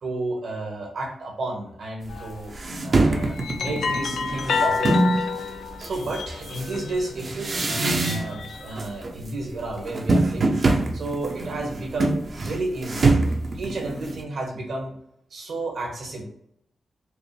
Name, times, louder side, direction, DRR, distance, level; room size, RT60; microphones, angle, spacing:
voice 1, 0.0-2.5 2.8-5.3 5.8-10.6 10.9-13.1 13.6-14.9 15.3-16.2, right 2 dB, 75° right, 1 dB, 1.3 m, -32 dB
sound 1, 2.1-2.4 3.1-7.2 7.8-8.9, left 5 dB, 80° left, 0.4 m, -29 dB
sound 2, 2.1-2.2 2.5-5.2 5.8-8.5 8.8-9.3 9.6-14.2, right 2 dB, 55° right, 0.7 m, -24 dB
5.1 x 2.0 x 3.3 m, 0.73 s
cardioid pair, 70°, 0 cm